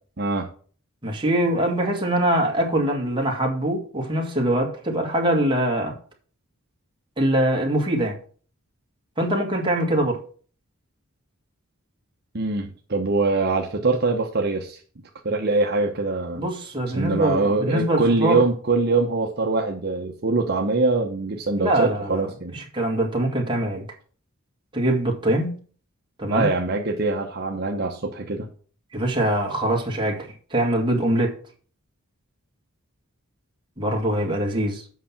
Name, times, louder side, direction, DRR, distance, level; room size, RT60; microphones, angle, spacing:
voice 1, 0.2-0.5 12.3-14.8 15.2-16.4 16.9-22.5 26.3-28.5, right 3 dB, 50° right, 1.0 m, -23 dB
voice 2, 1.0-6.0 7.2-8.2 9.2-10.2 16.4-18.4 21.6-23.9 24.7-25.6 26.2-26.5 28.9-31.4 33.8-34.8, right 1 dB, 25° right, 1.9 m, -23 dB
8.0 x 5.5 x 5.9 m
head